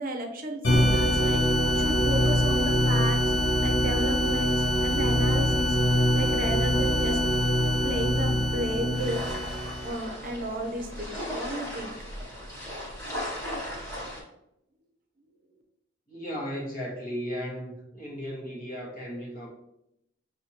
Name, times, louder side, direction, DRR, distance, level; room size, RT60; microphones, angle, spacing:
voice 1, 0.0-1.4 1.7-3.2 3.6-5.8 6.1-7.2 7.8-9.3 9.8-11.9, right 1 dB, 45° right, 4 dB, 0.6 m, -33 dB
sound 1, 0.6-10.0, equal, 85° left, 0.9 m, -24 dB
sound 2, 8.9-14.2, equal, 15° left, 1.5 m, -37 dB
voice 2, 16.1-19.5, equal, 45° left, -3 dB, 1.3 m, -35 dB
6.1 x 2.8 x 2.8 m, 0.81 s
head